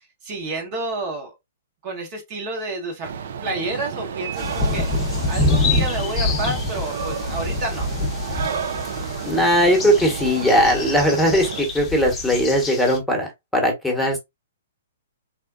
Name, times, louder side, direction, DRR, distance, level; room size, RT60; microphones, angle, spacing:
voice 1, 0.0-1.3 1.8-3.1 3.4-4.9 5.3-7.9, right 2 dB, 35° right, 0.9 m, -30 dB
sound 1, 3.0-11.6, right 7 dB, 55° right, 0.4 m, -31 dB
sound 2, 4.4-13.0, left 3 dB, 20° left, 0.7 m, -26 dB
voice 2, 9.2-13.3 13.5-14.2, equal, ahead, 1.1 m, -19 dB
3.6 x 2.2 x 2.3 m
figure-of-eight pair, 120°, 0 cm